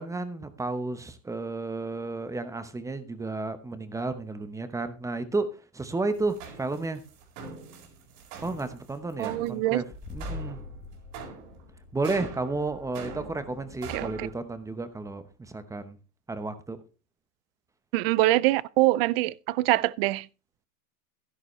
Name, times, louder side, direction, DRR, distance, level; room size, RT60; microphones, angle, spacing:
voice 1, 0.0-7.0 8.4-9.9 10.1-10.6 11.9-16.0 16.3-16.8, right 3 dB, 5° right, 0.8 m, -32 dB
sound 1, 6.1-14.3, right 4 dB, 60° right, 4.5 m, -43 dB
voice 2, 9.2-9.8 13.9-14.3 17.9-20.3, right 18 dB, 45° right, 0.4 m, -24 dB
sound 2, 9.9-15.5, left 2 dB, 15° left, 1.0 m, -44 dB
11.5 x 11.0 x 3.1 m
supercardioid pair, 135°, 45 cm